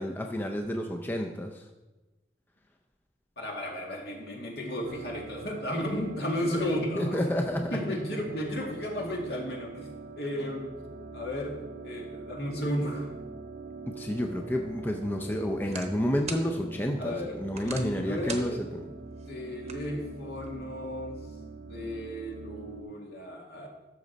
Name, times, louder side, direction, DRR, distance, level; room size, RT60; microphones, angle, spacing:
voice 1, 0.0-1.6 7.0-7.8 14.0-18.5, left 1 dB, 10° left, 2 dB, 0.5 m, -30 dB
voice 2, 3.4-7.2 7.7-9.9 10.2-10.7 11.1-11.5 11.8-13.1 15.6-15.8 17.0-17.3 17.6-18.6 19.3-21.1 21.7-23.7, equal, 65° left, -1 dB, 2.1 m, -33 dB
sound 1, 4.8-22.8, right 4 dB, 85° right, 0.9 m, -44 dB
sound 2, 14.5-20.6, right 5 dB, 35° right, 0.9 m, -46 dB
13.0 x 6.3 x 4.1 m, 1.1 s
head